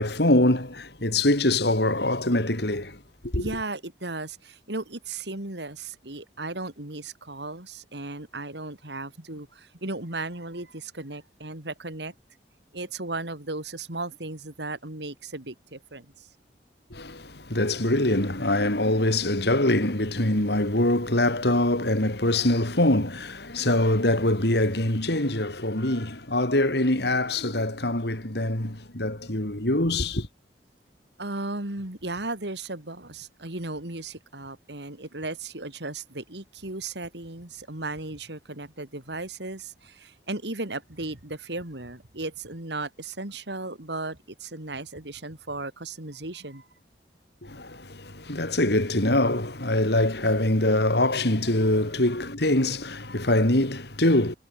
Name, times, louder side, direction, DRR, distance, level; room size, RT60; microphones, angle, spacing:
voice 1, 0.0-3.5 16.9-30.3 47.4-54.3, left 1 dB, 65° left, 4.1 m, -24 dB
voice 2, 3.4-12.1 12.7-16.3 31.2-46.7, right 2 dB, 70° right, 3.6 m, -36 dB
head